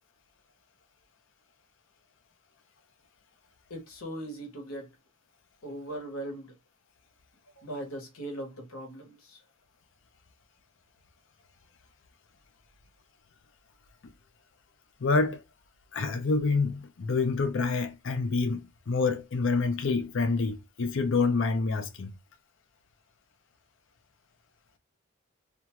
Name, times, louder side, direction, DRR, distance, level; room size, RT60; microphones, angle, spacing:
voice 1, 3.7-4.9 5.6-6.5 7.6-9.4, right 1 dB, 85° left, 1.1 m, -39 dB
voice 2, 15.0-15.4 15.9-22.1, left 4 dB, 60° left, 0.5 m, -27 dB
2.6 x 2.3 x 2.9 m
head